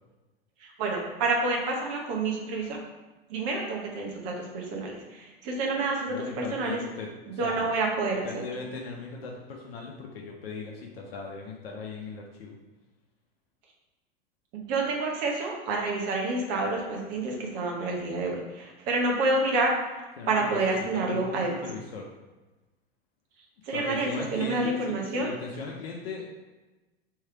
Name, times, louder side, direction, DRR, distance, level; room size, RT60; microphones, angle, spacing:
voice 1, 0.6-2.8 3.3-6.8 7.3-8.4 14.5-21.6 23.7-25.3, right 3 dB, 50° right, 0 dB, 1.1 m, -28 dB
voice 2, 6.1-7.7 8.2-12.5 20.2-20.6 20.9-22.1 23.6-26.3, left 4 dB, 75° left, -1 dB, 0.7 m, -38 dB
3.5 x 3.2 x 4.6 m, 1.1 s
figure-of-eight pair, 80°, 30 cm